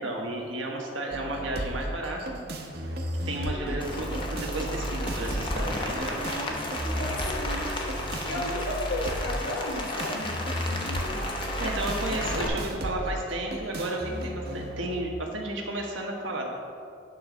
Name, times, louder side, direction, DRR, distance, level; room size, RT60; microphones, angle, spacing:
voice 1, 0.0-2.4 3.2-6.2 11.6-16.5, right 1 dB, 90° right, -1 dB, 1.4 m, -33 dB
sound 1, 1.1-15.1, right 1 dB, 55° right, 0.9 m, -34 dB
voice 2, 3.7-4.1 6.1-11.3, left 1 dB, 80° left, 0 dB, 1.1 m, -35 dB
Rain, 3.8-12.5, left 2 dB, 25° left, 0.8 m, -34 dB
9.1 x 3.9 x 6.2 m, 2.4 s
head